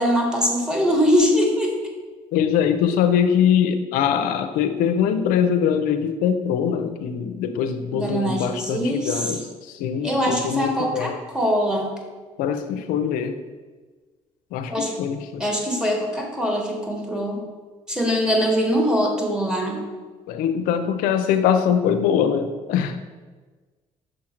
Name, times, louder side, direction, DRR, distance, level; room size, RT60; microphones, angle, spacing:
voice 1, 0.0-1.7 7.9-9.4 10.0-11.9 14.7-14.9 15.4-17.4 17.9-19.8, equal, 5° right, 1 dB, 1.5 m, -22 dB
voice 2, 2.3-11.2 12.4-13.4 14.5-15.4 20.3-23.0, left 8 dB, 85° left, 8 dB, 0.5 m, -22 dB
6.4 x 3.7 x 4.4 m, 1.4 s
supercardioid pair, 75°, 14 cm